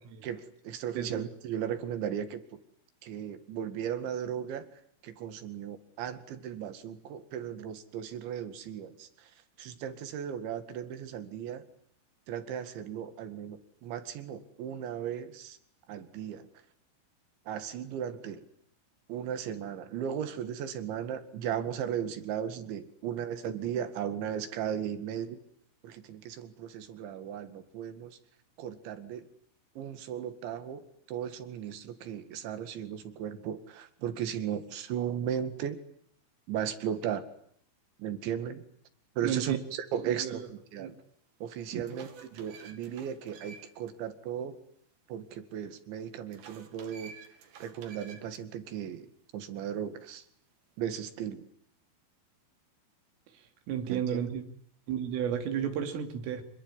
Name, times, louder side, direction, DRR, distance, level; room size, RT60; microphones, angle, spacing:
voice 1, 0.2-2.6 3.0-4.7 5.0-9.3 9.6-11.7 12.3-15.6 15.9-16.5 17.5-18.5 19.1-25.4 25.8-28.2 28.6-29.3 29.8-35.8 36.5-37.3 38.0-38.6 39.2-41.0 41.4-44.6 45.1-47.1 47.6-50.2 50.8-51.4 53.9-54.2, right 9 dB, 70° right, 10 dB, 4.2 m, -36 dB
voice 2, 39.2-39.6 40.0-40.5 40.8-40.9 41.7-41.8 53.3-54.4 54.9-56.4, right 9 dB, 85° right, 7 dB, 5.3 m, -33 dB
sound 1, 40.9-41.0 41.5-43.9 44.3-44.4 46.3-48.4, right 6 dB, 55° right, 4.0 m, -51 dB
26.5 x 23.0 x 10.0 m, 0.65 s
omnidirectional pair, 5.7 m